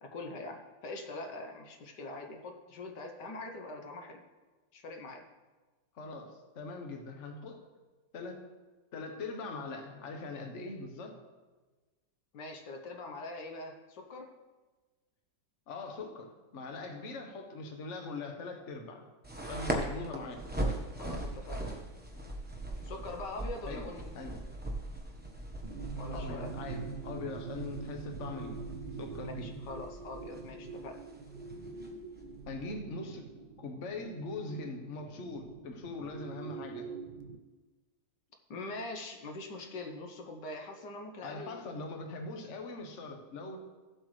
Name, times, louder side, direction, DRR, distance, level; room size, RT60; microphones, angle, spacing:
voice 1, 0.0-4.2 4.7-5.2 12.3-14.3 17.1-17.2 19.8-20.1 20.9-21.6 22.8-24.1 26.0-26.5 29.2-31.0 38.5-41.9, left 2 dB, 70° left, 3 dB, 1.6 m, -43 dB
voice 2, 5.9-7.6 8.1-8.5 8.9-11.1 15.7-19.0 19.4-20.4 23.7-23.9 24.1-24.4 26.1-28.7 29.0-29.4 32.5-33.3 33.6-36.9 41.2-43.6, left 3 dB, 45° left, 4 dB, 1.3 m, -42 dB
sound 1, 19.2-32.7, right 1 dB, 5° right, 0.8 m, -40 dB
sound 2, 25.6-37.4, right 4 dB, 80° right, 1.5 m, -44 dB
15.0 x 7.9 x 3.2 m, 1.3 s
omnidirectional pair, 2.0 m